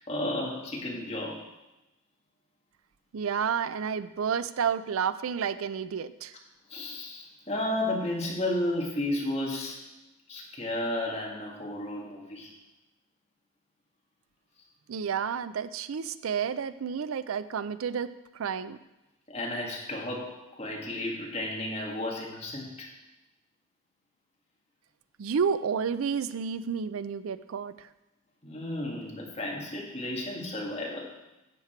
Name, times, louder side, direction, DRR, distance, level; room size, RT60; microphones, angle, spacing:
voice 1, 0.1-1.5 6.7-9.8 10.3-12.5 19.3-22.9 28.4-31.1, left 1 dB, 30° left, -2 dB, 1.9 m, -33 dB
voice 2, 3.1-6.3 14.9-18.1 18.3-18.8 25.2-27.9, right 7 dB, 85° right, 14 dB, 0.4 m, -30 dB
10.5 x 7.3 x 4.5 m, 0.94 s
head